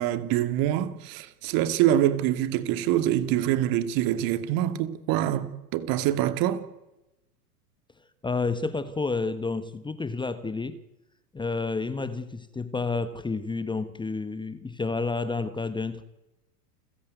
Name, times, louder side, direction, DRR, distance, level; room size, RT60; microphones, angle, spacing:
voice 1, 0.0-6.6, right 12 dB, 45° right, 2.5 m, -25 dB
voice 2, 8.2-10.8 11.3-16.0, left 3 dB, 10° left, 1.3 m, -30 dB
29.5 x 15.5 x 9.4 m
hypercardioid pair, 105°, 48 cm